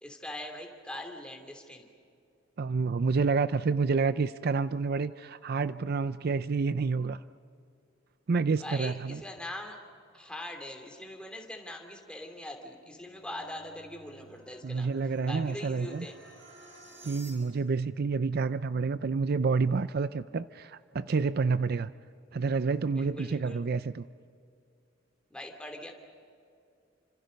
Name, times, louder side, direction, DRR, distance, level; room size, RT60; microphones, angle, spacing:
voice 1, 0.0-1.9 8.6-9.8 10.1-14.9 15.3-16.1 22.9-23.6 25.3-25.9, left 1 dB, 5° left, 2 dB, 3.0 m, -42 dB
voice 2, 2.6-7.2 8.3-9.2 14.6-16.1 17.0-21.9 22.3-24.0, right 4 dB, 55° right, 14 dB, 0.5 m, -29 dB
sound 1, 12.8-17.8, right 2 dB, 75° right, 6.2 m, -54 dB
30.0 x 26.5 x 5.3 m, 2.5 s
head